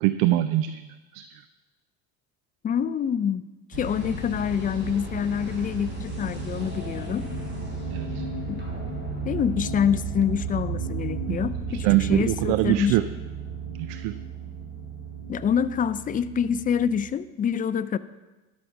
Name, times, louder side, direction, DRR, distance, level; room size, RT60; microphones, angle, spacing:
voice 1, 0.0-0.8 1.1-1.3 7.9-8.2 11.3-11.4 11.8-13.0 13.7-14.2, right 15 dB, 65° right, 13 dB, 0.6 m, -23 dB
voice 2, 2.6-3.4 3.8-7.2 8.5-8.6 9.3-12.9 15.3-18.0, left 8 dB, 20° left, 15 dB, 0.3 m, -26 dB
sound 1, 3.7-17.1, right 4 dB, 25° right, 3.9 m, -34 dB
12.0 x 6.5 x 5.9 m, 1.1 s
hypercardioid pair, 80°, 43 cm